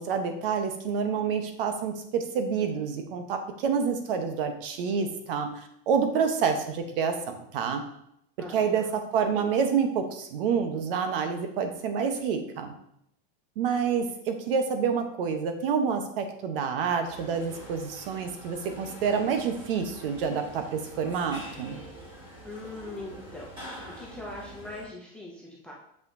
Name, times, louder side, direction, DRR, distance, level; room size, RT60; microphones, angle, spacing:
voice 1, 0.0-7.8 8.5-12.7 13.6-21.8, right 6 dB, 65° right, 6 dB, 1.0 m, -28 dB
voice 2, 8.4-8.9 22.4-25.7, left 2 dB, 5° left, -3 dB, 0.3 m, -42 dB
sound 1, 17.0-24.8, equal, 15° right, 2.2 m, -45 dB
6.8 x 5.6 x 2.7 m, 0.73 s
supercardioid pair, 175°, 30 cm